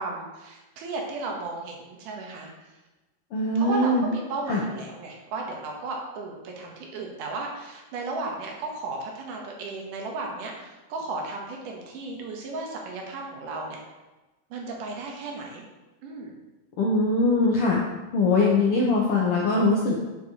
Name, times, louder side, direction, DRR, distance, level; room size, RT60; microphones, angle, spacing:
voice 1, 0.0-2.5 3.6-13.8 14.5-15.6 16.0-16.3, right 3 dB, 75° right, 0 dB, 2.7 m, -34 dB
voice 2, 3.3-4.1 4.5-4.6 16.8-17.8 18.1-20.0, left 2 dB, 80° left, -4 dB, 1.3 m, -22 dB
7.9 x 7.1 x 3.0 m, 1.1 s
omnidirectional pair, 3.8 m